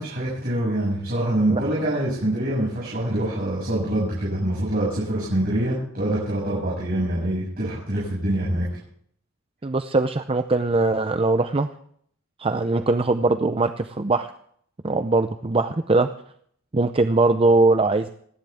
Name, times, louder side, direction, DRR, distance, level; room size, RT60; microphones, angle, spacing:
voice 1, 0.0-8.6, right 1 dB, 45° right, -6 dB, 6.9 m, -25 dB
voice 2, 9.6-11.7 12.4-14.3 14.8-16.1 16.7-18.1, right 3 dB, 25° right, 8 dB, 0.6 m, -21 dB
28.0 x 10.5 x 3.5 m, 0.63 s
head